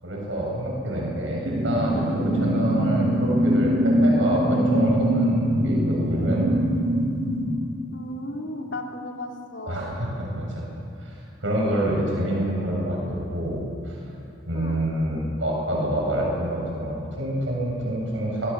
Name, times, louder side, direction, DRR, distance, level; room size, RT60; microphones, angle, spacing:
voice 1, 0.0-6.4 9.7-10.6 11.0-11.1 11.4-14.0 14.4-18.5, right 1 dB, 75° right, -2 dB, 7.8 m, -27 dB
sound 1, 1.4-7.4, equal, 45° right, 5.4 m, -22 dB
voice 2, 7.9-9.8 14.5-14.8, left 1 dB, 65° left, 1 dB, 3.2 m, -35 dB
26.0 x 22.0 x 7.5 m, 2.5 s
head